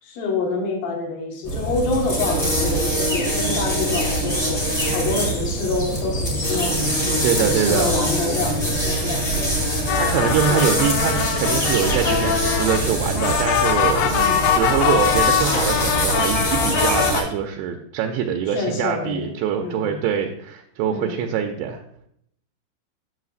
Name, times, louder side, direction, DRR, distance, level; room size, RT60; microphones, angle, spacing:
voice 1, 0.0-9.6 10.5-10.7 14.1-14.4 18.5-19.3 19.6-20.0 20.9-21.2, left 3 dB, 65° left, 1 dB, 2.2 m, -27 dB
sound 1, 1.4-17.2, right 1 dB, 30° left, 1.3 m, -23 dB
voice 2, 7.2-7.9 10.0-14.1 14.6-21.8, right 8 dB, 85° right, 4 dB, 2.7 m, -24 dB
sound 2, 9.9-17.2, left 8 dB, 85° left, 2.2 m, -22 dB
9.4 x 7.6 x 2.4 m, 0.69 s
omnidirectional pair, 5.4 m